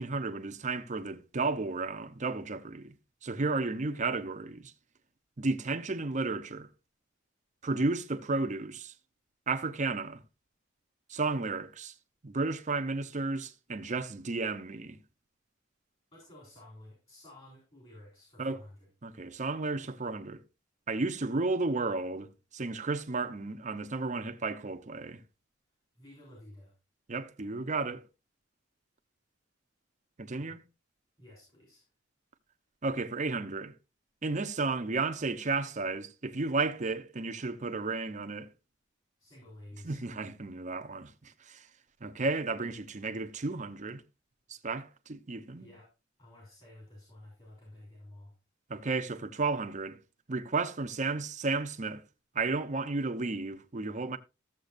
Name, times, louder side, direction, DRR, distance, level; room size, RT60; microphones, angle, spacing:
voice 1, 0.0-2.9 3.2-4.7 5.4-6.7 7.6-8.9 9.5-10.2 11.1-11.9 12.2-15.0 18.4-18.6 19.0-20.4 20.9-25.2 27.1-28.0 30.2-30.6 32.8-33.7 34.2-38.5 39.8-41.7 42.0-44.0 44.6-45.7 48.7-50.0 50.3-52.0 52.3-54.2, right 3 dB, 40° right, 0.7 m, -33 dB
voice 2, 3.7-4.1 16.1-18.9 26.0-26.7 30.3-30.6 31.2-31.9 39.2-40.0 45.6-45.9 46.2-48.3, left 1 dB, 30° left, 3.8 m, -52 dB
13.0 x 7.5 x 2.5 m
head